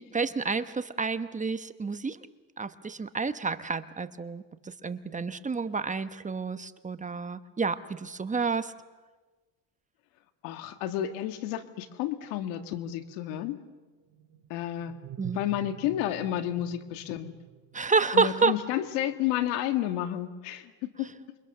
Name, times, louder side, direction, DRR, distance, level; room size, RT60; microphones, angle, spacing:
voice 1, 0.0-2.3 2.6-8.7 15.2-15.4 17.7-18.6, right 5 dB, 20° right, 11 dB, 1.1 m, -29 dB
voice 2, 10.4-13.6 14.5-14.9 15.3-17.3 18.1-21.1, left 12 dB, 90° left, 9 dB, 1.8 m, -31 dB
sound 1, 14.0-19.3, right 9 dB, 40° right, 5.1 m, -47 dB
28.0 x 24.0 x 6.7 m, 1.3 s
cardioid pair, 105°, 41 cm